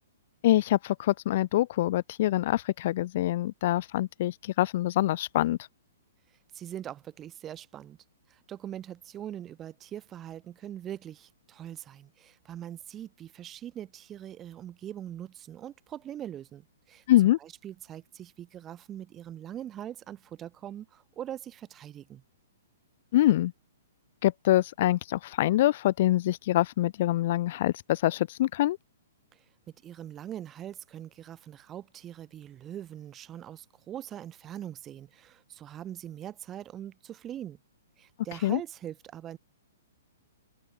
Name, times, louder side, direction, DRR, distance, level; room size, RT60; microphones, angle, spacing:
voice 1, 0.4-5.6 17.1-17.4 23.1-23.5 24.2-28.8 38.4-38.6, left 14 dB, 50° left, 0.6 m, -25 dB
voice 2, 6.5-8.0 8.3-17.0 17.4-22.2 29.3-29.4 29.8-37.6 38.0-39.4, right 11 dB, 20° right, 6.3 m, -42 dB
hypercardioid pair, 145°, 0 cm